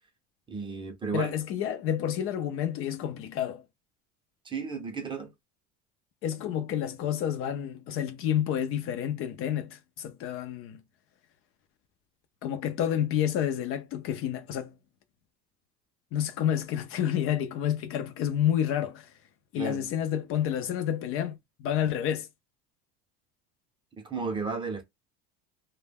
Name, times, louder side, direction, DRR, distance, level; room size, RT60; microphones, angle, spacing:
voice 1, 0.5-1.3 4.4-5.3 19.6-19.9 24.0-24.8, right 4 dB, 15° right, 0.6 m, -33 dB
voice 2, 1.1-3.6 6.2-10.8 12.4-14.7 16.1-19.1 19.5-22.3, left 10 dB, 45° left, 0.4 m, -29 dB
2.1 x 2.1 x 3.4 m
cardioid pair, 145°, 31 cm